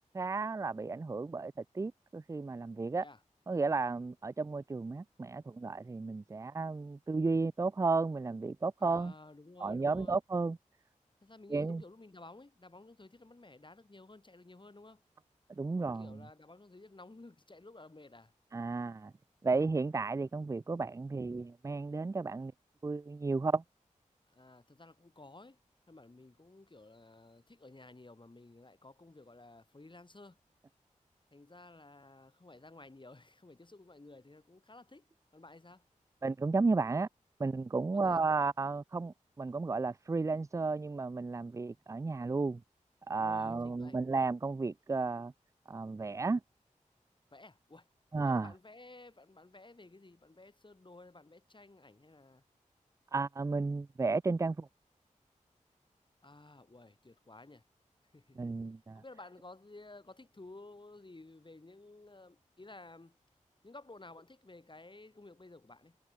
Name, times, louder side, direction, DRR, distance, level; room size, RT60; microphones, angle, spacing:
voice 1, 0.1-3.0 3.5-9.1 9.6-10.6 11.5-11.8 15.6-16.2 18.5-19.1 19.4-22.5 22.8-23.6 36.2-37.1 37.4-42.6 43.1-45.3 45.7-46.4 48.1-48.5 53.1-54.7 58.4-59.0, right 3 dB, 25° right, 0.4 m, -33 dB
voice 2, 8.8-10.2 11.2-15.0 15.8-18.3 21.1-21.4 24.3-25.6 25.9-30.4 31.3-35.0 35.3-35.8 37.9-38.2 43.2-44.0 47.3-47.9 48.2-52.4 56.2-57.6 58.1-58.4 58.9-63.2 63.6-66.0, left 2 dB, 35° left, 6.2 m, -54 dB
cardioid pair, 45°, 13 cm